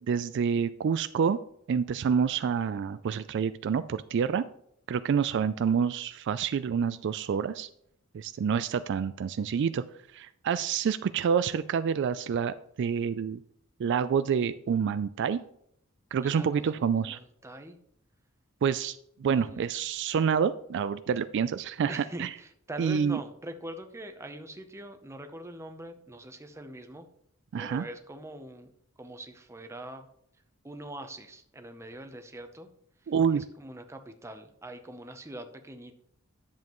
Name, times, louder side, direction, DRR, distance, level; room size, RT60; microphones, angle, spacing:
voice 1, 0.1-1.4 1.7-4.5 4.9-7.7 8.1-9.8 10.1-13.4 13.8-15.4 16.1-17.2 18.6-22.3 22.8-23.2 27.5-27.8 33.1-33.4, right 7 dB, 55° right, 13 dB, 0.3 m, -28 dB
voice 2, 16.2-17.8 19.3-19.7 21.9-27.1 27.5-28.7 29.0-30.1 30.6-32.7 33.0-36.0, right 1 dB, 15° right, 7 dB, 0.7 m, -43 dB
10.5 x 7.3 x 3.0 m, 0.70 s
head